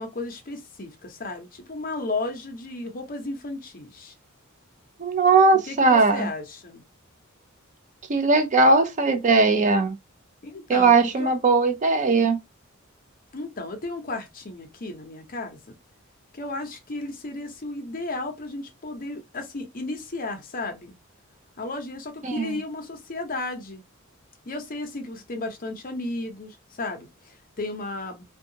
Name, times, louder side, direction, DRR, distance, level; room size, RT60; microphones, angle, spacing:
voice 1, 0.0-4.1 5.7-6.8 10.4-11.3 13.3-15.7 16.3-21.0 21.6-23.8 24.5-28.2, left 2 dB, 40° left, 0.7 m, -34 dB
voice 2, 5.0-6.3 8.1-10.0 10.7-12.4 22.2-22.6, right 3 dB, 35° right, 0.4 m, -19 dB
2.7 x 2.3 x 2.7 m
head